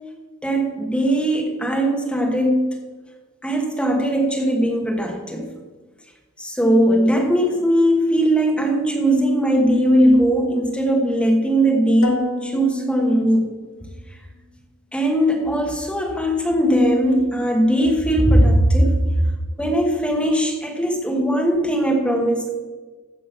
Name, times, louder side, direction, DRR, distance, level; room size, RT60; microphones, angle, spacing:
voice 1, 0.4-2.7 3.4-5.5 6.4-13.5 14.9-19.1 19.6-22.5, right 1 dB, 5° left, 1 dB, 1.3 m, -19 dB
sound 1, 12.0-14.0, left 1 dB, 65° left, 1.2 m, -29 dB
15.0 x 5.3 x 5.7 m, 1.3 s
head